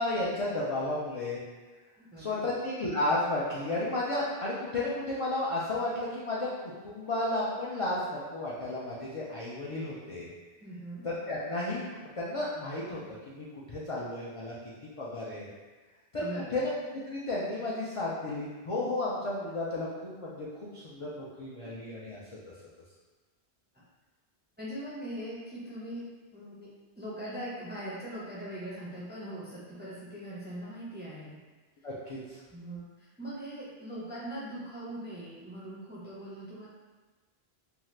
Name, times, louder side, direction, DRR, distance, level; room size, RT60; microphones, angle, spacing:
voice 1, 0.0-1.4 2.2-6.5 6.8-10.3 11.0-13.0 13.3-14.5 14.8-15.5 16.1-16.3 16.5-22.2 31.8-32.4, left 2 dB, 50° left, -7 dB, 0.4 m, -33 dB
voice 2, 2.0-2.5 10.6-11.1 16.1-16.6 21.6-21.7 24.6-26.7 27.0-31.4 32.5-36.7, right 1 dB, 15° right, -8 dB, 0.4 m, -41 dB
2.7 x 2.3 x 3.2 m, 1.3 s
omnidirectional pair, 1.1 m